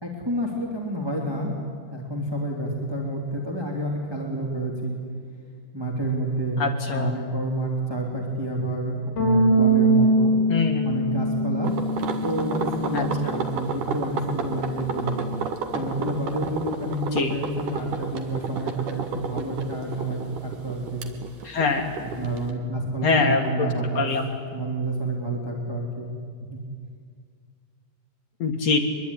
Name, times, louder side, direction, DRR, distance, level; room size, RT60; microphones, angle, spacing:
voice 1, 0.0-1.5 1.9-5.0 5.7-10.3 10.8-11.7 12.2-15.2 15.7-21.0 22.0-26.1 26.5-26.6, right 1 dB, 5° right, -2 dB, 2.5 m, -29 dB
voice 2, 6.6-7.2 10.5-10.9 12.9-13.0 17.1-17.4 21.4-21.9 23.0-23.7 24.0-24.3 28.4-28.8, left 4 dB, 50° left, 3 dB, 2.3 m, -23 dB
Bass guitar, 9.2-15.4, right 1 dB, 70° left, 7.0 m, -24 dB
sound 1, 11.6-22.5, right 5 dB, 60° right, 3.0 m, -31 dB
24.0 x 22.5 x 10.0 m, 2.1 s
omnidirectional pair, 4.6 m